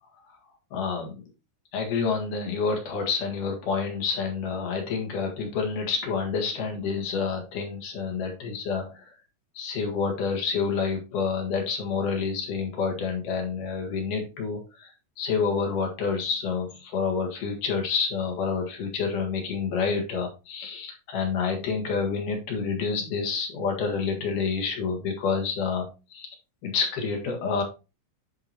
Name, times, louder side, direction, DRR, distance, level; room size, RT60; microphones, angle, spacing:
voice 1, 0.7-1.3 1.7-9.1 9.6-14.9 15.2-25.9 26.1-26.3 26.6-27.6, left 5 dB, 75° left, 2 dB, 3.4 m, -28 dB
10.5 x 4.9 x 2.8 m, 0.29 s
omnidirectional pair, 3.8 m